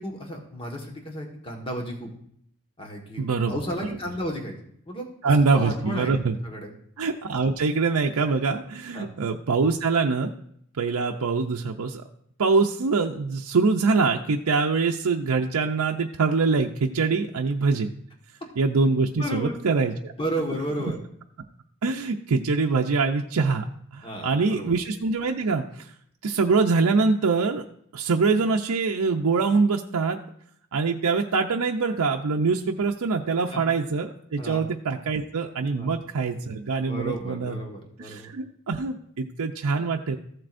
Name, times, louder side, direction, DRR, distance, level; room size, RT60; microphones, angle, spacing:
voice 1, 0.0-2.1 2.8-4.5 4.9-5.1 5.5-6.1 6.4-6.7 8.9-9.1 19.2-19.6 20.2-21.0 24.0-24.8 33.5-33.6 34.4-34.6 35.7-35.9 36.9-38.3, equal, 25° left, 1 dB, 1.5 m, -33 dB
voice 2, 3.2-3.6 5.2-6.4 7.0-10.3 10.8-12.0 12.4-17.9 18.6-20.1 21.8-23.6 23.9-25.9 26.2-27.6 27.9-30.2 30.7-37.6 38.0-40.2, right 4 dB, 80° right, 1 dB, 0.6 m, -24 dB
14.5 x 7.6 x 2.6 m, 0.68 s
head